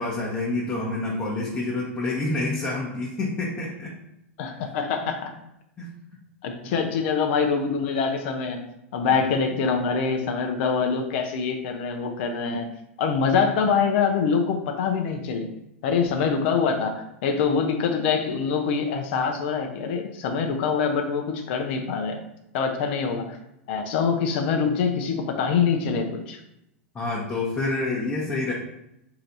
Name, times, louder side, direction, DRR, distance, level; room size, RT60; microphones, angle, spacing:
voice 1, 0.0-3.9 5.0-5.1 5.8-5.9 26.9-28.5, left 2 dB, 20° left, -4 dB, 0.8 m, -28 dB
voice 2, 4.4-5.3 6.4-8.6 8.9-12.7 13.0-15.5 15.8-22.2 22.5-23.4 23.7-26.4, left 5 dB, 60° left, 4 dB, 0.6 m, -24 dB
3.2 x 2.8 x 3.9 m, 0.82 s
hypercardioid pair, 105°, 7 cm